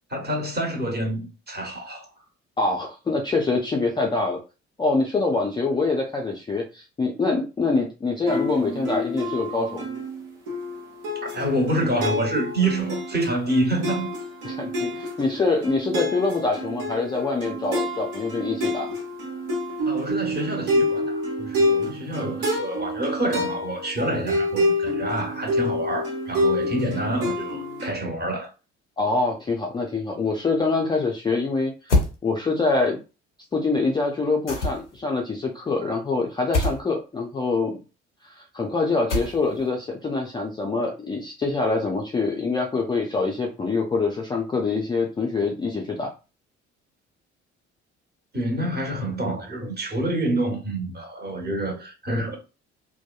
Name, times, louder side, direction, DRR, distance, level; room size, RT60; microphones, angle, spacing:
voice 1, 0.1-2.1 11.3-14.1 19.9-28.5 48.3-52.4, right 1 dB, 30° right, 1.2 m, -27 dB
voice 2, 2.6-4.4 4.8-9.9 14.4-18.9 29.0-32.0 32.2-33.0 33.5-37.7 38.2-46.1, left 3 dB, 15° left, 0.4 m, -25 dB
sound 1, 8.3-27.9, left 1 dB, 65° right, 1.0 m, -28 dB
sound 2, 31.9-32.2 34.5-35.0 36.5-36.8 39.1-39.6, left 2 dB, 90° left, 0.5 m, -23 dB
2.6 x 2.2 x 2.3 m
figure-of-eight pair, 50°, 34 cm